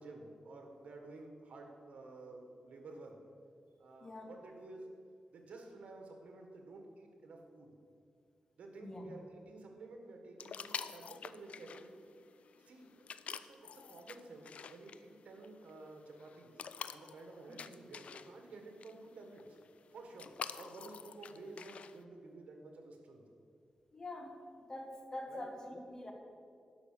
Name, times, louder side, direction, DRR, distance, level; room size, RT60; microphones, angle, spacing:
voice 1, 0.0-3.2 3.8-4.9 5.3-7.7 8.6-11.9 12.6-16.6 16.9-19.4 19.9-20.3 20.6-23.2 25.3-25.4, right 2 dB, 80° right, 3 dB, 1.7 m, -52 dB
voice 2, 4.0-4.3 8.8-9.1 17.5-17.6 23.9-24.4 24.7-26.1, left 1 dB, 30° left, 2 dB, 1.7 m, -45 dB
sound 1, 10.4-22.0, left 7 dB, 70° left, 0.4 m, -49 dB
11.5 x 5.6 x 6.8 m, 2.3 s
wide cardioid pair, 95°, 2 cm